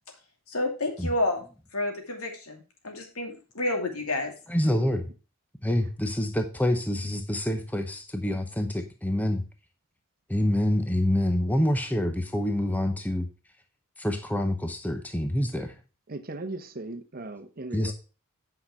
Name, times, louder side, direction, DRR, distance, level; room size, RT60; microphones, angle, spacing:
voice 1, 0.5-1.4 1.7-4.3, left 2 dB, 80° left, 2.6 m, -30 dB
voice 2, 4.5-5.1 5.6-9.4 10.3-13.3 14.0-15.7 17.7-17.9, left 1 dB, 5° left, 0.8 m, -26 dB
voice 3, 16.1-17.9, right 2 dB, 40° right, 0.9 m, -37 dB
8.6 x 5.7 x 4.8 m
head